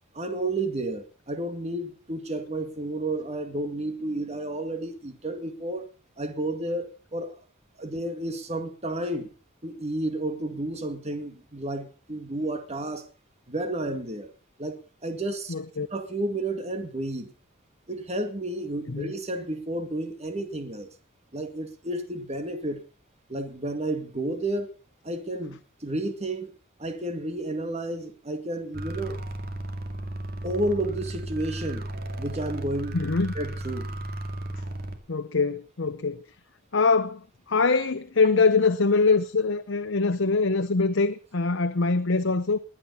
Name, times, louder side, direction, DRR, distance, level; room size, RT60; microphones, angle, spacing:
voice 1, 0.1-5.9 6.2-7.4 7.8-9.3 9.6-13.0 13.5-14.3 14.6-17.3 17.9-20.9 21.3-22.8 23.3-24.7 25.0-26.5 26.8-29.2 30.4-31.9 32.2-33.0 33.4-33.9, right 1 dB, 35° right, 2.1 m, -31 dB
voice 2, 15.5-15.9 18.9-19.1 32.9-33.3 35.1-36.2 36.7-42.6, left 4 dB, 70° left, 0.8 m, -23 dB
sound 1, 28.7-35.0, right 1 dB, 50° right, 2.4 m, -34 dB
20.5 x 9.7 x 5.5 m
head